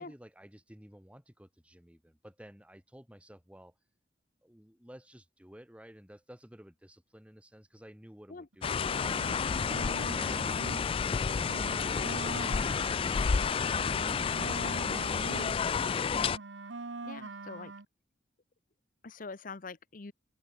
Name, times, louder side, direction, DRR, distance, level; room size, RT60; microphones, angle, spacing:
voice 1, 0.0-3.8 4.4-16.1, equal, 5° right, 1.9 m, -54 dB
sound 1, 8.5-10.9 11.2-15.6 15.8-17.8, right 3 dB, 75° right, 1.2 m, -43 dB
sound 2, 8.6-16.4, left 6 dB, 30° left, 0.3 m, -30 dB
voice 2, 17.0-17.7 19.0-20.1, left 4 dB, 45° left, 0.8 m, -44 dB
open air
head